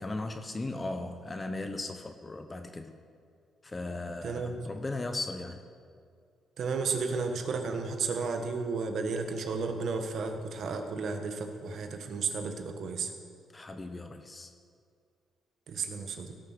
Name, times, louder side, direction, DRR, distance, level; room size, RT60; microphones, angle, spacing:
voice 1, 0.0-2.9 3.6-5.6 13.5-14.5, left 2 dB, 25° left, 7 dB, 0.8 m, -37 dB
voice 2, 4.2-4.6 6.6-13.1 15.7-16.3, right 4 dB, 65° right, 5 dB, 1.4 m, -33 dB
17.5 x 6.6 x 6.1 m, 2.3 s
cardioid pair, 90°, 0 cm